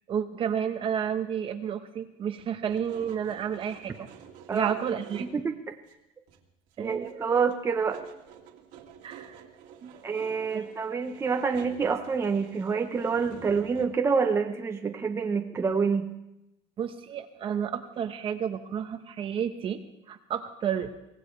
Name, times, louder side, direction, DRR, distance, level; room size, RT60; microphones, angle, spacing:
voice 1, 0.1-4.1 4.5-5.3 6.8-7.4 9.0-9.4 9.8-10.0 10.5-10.7 16.8-19.8 20.1-20.9, right 8 dB, 40° right, 8 dB, 1.2 m, -31 dB
sound 1, 2.7-5.5 5.8-5.9 6.3-7.1 7.4-13.9, right 8 dB, 65° right, 2.2 m, -49 dB
voice 2, 5.3-5.7 6.8-8.0 10.0-16.1, right 5 dB, 20° right, 4 dB, 1.0 m, -27 dB
24.5 x 17.5 x 3.4 m, 0.90 s
cardioid pair, 135°, 14 cm